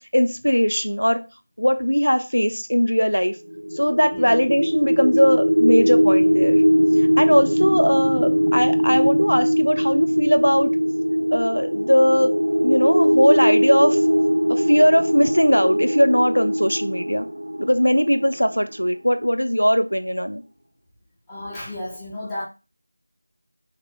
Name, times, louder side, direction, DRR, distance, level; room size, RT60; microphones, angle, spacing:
voice 1, 0.1-1.2 1.6-3.4 3.7-6.6 7.0-10.7 11.3-12.3 12.6-14.0 14.5-17.3 17.6-20.4, equal, 85° left, 0.4 m, -19 dB
sound 1, 3.5-18.5, equal, 75° right, 0.3 m, -20 dB
voice 2, 21.3-22.4, left 1 dB, 5° left, 0.5 m, -33 dB
2.8 x 2.1 x 3.2 m
figure-of-eight pair, 170°, 0 cm